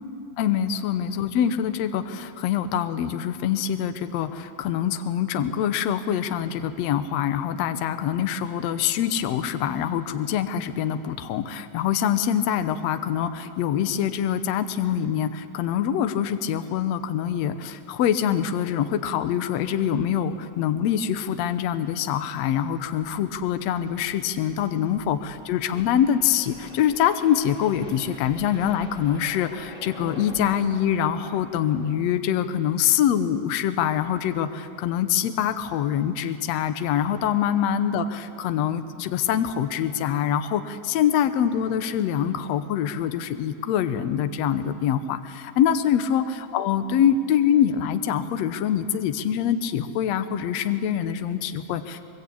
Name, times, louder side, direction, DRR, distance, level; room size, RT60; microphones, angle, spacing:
voice 1, 0.4-52.1, left 9 dB, 85° left, 10 dB, 1.5 m, -24 dB
sound 1, 20.5-20.6 21.1-21.4 22.7-32.0, equal, 15° left, 1.9 m, -47 dB
23.0 x 22.0 x 8.5 m, 2.6 s
omnidirectional pair, 4.2 m